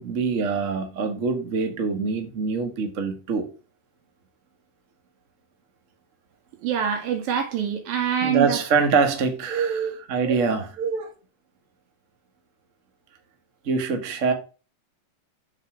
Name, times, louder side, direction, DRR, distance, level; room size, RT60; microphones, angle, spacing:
voice 1, 0.0-3.5 8.2-10.7 13.6-14.3, right 5 dB, 60° right, 0.7 m, -24 dB
voice 2, 6.6-8.6 9.5-10.0 10.2-10.4 10.8-11.1, right 8 dB, 80° right, 3.5 m, -25 dB
6.8 x 5.0 x 6.2 m
omnidirectional pair, 4.0 m